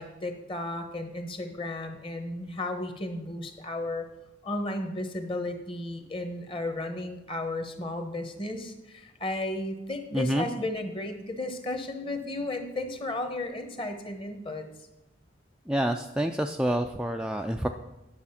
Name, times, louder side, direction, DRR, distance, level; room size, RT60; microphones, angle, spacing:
voice 1, 0.0-4.0 4.4-14.6, left 2 dB, 25° left, 6 dB, 1.2 m, -34 dB
voice 2, 10.1-10.5 15.7-17.7, right 1 dB, 5° right, 4 dB, 0.3 m, -27 dB
9.7 x 7.2 x 5.7 m, 0.97 s
head